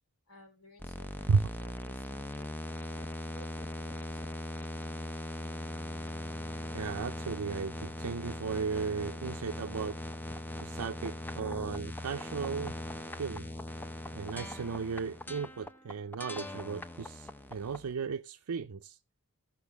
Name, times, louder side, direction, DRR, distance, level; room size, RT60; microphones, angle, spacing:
voice 1, 0.3-1.3 1.6-2.5 2.8-4.8, left 1 dB, 85° left, 4.5 m, -57 dB
sound 1, 0.8-17.9, left 1 dB, 10° left, 0.6 m, -40 dB
voice 2, 6.7-10.0 10.6-12.7 13.2-13.5 14.1-19.0, right 5 dB, 75° right, 0.5 m, -35 dB
15.5 x 5.9 x 3.4 m
head